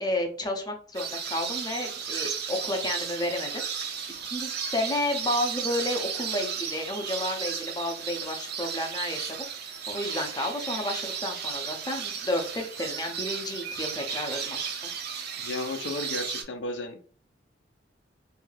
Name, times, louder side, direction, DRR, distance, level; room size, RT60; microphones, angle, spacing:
voice 1, 0.0-3.6 4.2-14.7, left 1 dB, 20° left, 3 dB, 0.6 m, -31 dB
sound 1, 1.0-16.4, right 7 dB, 60° right, 0.5 m, -34 dB
voice 2, 15.4-17.1, left 2 dB, 70° left, 7 dB, 0.5 m, -34 dB
2.6 x 2.3 x 3.2 m, 0.43 s
head